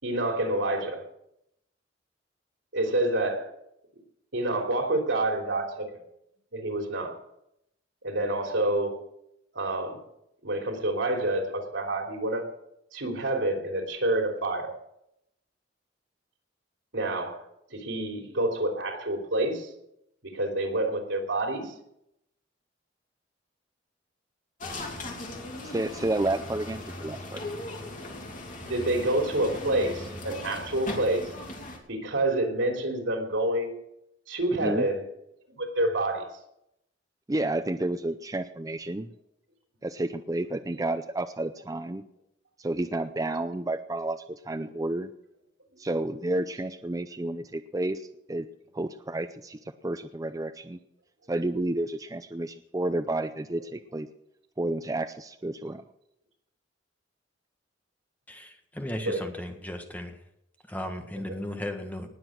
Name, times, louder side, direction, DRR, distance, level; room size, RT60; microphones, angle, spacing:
voice 1, 0.0-1.0 2.7-3.5 4.3-5.9 6.5-7.1 8.0-9.0 9.5-10.0 10.4-12.4 12.9-14.7 16.9-17.4 17.7-19.7 20.2-21.7 28.6-31.3 31.9-33.7 34.3-35.0 35.6-36.3 59.0-59.2, right 1 dB, 85° right, 2 dB, 3.3 m, -28 dB
sound 1, 24.6-31.8, left 2 dB, 45° left, 2.9 m, -38 dB
voice 2, 25.6-27.4 34.5-34.9 37.3-39.1 39.8-42.0 42.6-45.1 45.8-48.5 48.7-50.8 51.3-54.1 54.6-55.8, right 2 dB, 20° right, 9 dB, 0.5 m, -31 dB
voice 3, 58.3-60.2 60.7-62.1, left 1 dB, 10° left, 5 dB, 1.6 m, -36 dB
19.5 x 7.8 x 6.4 m, 0.78 s
head